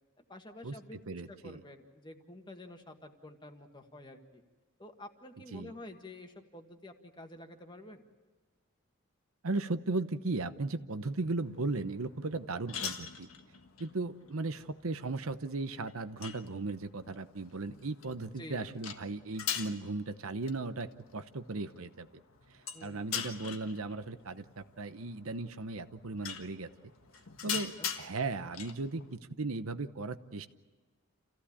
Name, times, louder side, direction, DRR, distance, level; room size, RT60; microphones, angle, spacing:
voice 1, 0.2-4.4 4.8-8.0 18.3-18.7 22.7-23.1 27.5-27.9, left 1 dB, 20° left, 5 dB, 1.6 m, -49 dB
voice 2, 1.1-1.6 5.5-5.7 9.4-13.3 13.8-22.1 22.5-26.7 27.4-30.5, right 3 dB, 80° right, 11 dB, 0.9 m, -36 dB
sound 1, 11.4-29.2, left 8 dB, 80° left, 1.5 m, -43 dB
28.0 x 15.5 x 8.6 m, 1.3 s
head